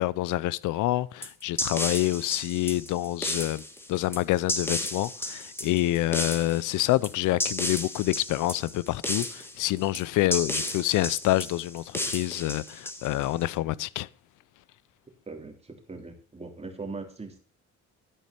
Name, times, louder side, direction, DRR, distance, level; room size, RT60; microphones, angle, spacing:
voice 1, 0.0-3.6 3.9-14.1, left 16 dB, 85° left, 0.5 m, -27 dB
sound 1, 1.2-13.4, left 1 dB, 10° left, 1.7 m, -33 dB
voice 2, 15.3-17.4, right 3 dB, 20° right, 2.9 m, -40 dB
12.5 x 5.5 x 6.7 m
cardioid pair, 90°, 30 cm